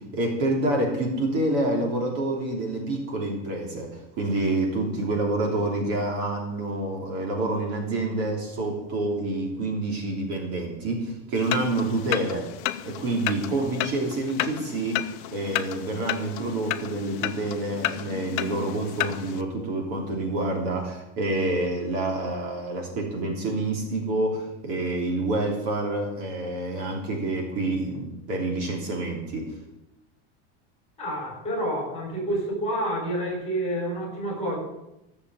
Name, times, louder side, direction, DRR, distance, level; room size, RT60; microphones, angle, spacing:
voice 1, 0.0-12.5 12.8-29.6, right 2 dB, 45° right, 0 dB, 3.2 m, -28 dB
sound 1, 11.3-19.4, left 14 dB, 50° left, 0.8 m, -32 dB
voice 2, 31.0-34.6, right 1 dB, 20° left, 1 dB, 4.5 m, -28 dB
15.0 x 7.1 x 7.8 m, 0.89 s
supercardioid pair, 175°, 33 cm